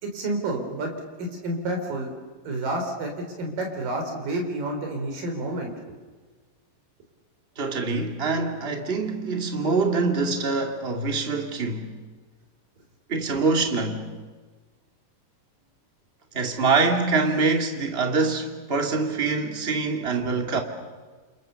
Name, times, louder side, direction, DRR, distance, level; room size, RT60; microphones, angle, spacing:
voice 1, 0.0-0.9 1.2-2.1 2.4-5.7, right 1 dB, 60° right, 5.8 m, -29 dB
voice 2, 7.6-11.9 13.1-14.1 16.3-20.6, right 4 dB, 20° right, 1.9 m, -24 dB
29.5 x 28.0 x 7.0 m
omnidirectional pair, 4.5 m